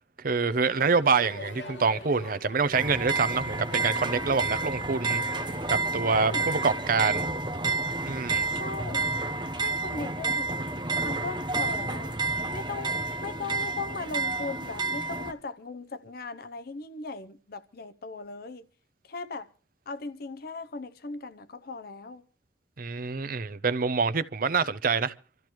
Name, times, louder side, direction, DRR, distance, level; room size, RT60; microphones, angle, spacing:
voice 1, 0.2-7.2 8.0-8.5 22.8-25.1, right 4 dB, 50° right, 0.7 m, -26 dB
Crowd, 0.7-7.0, left 2 dB, 75° left, 1.7 m, -45 dB
sound 1, 2.7-15.3, right 3 dB, 25° right, 0.9 m, -30 dB
voice 2, 6.0-6.5 8.5-9.1 9.5-10.6 11.0-12.2 12.5-12.9 13.2-18.7 19.1-19.5 19.9-22.3, left 3 dB, 55° left, 0.7 m, -38 dB
26.0 x 13.5 x 3.1 m
head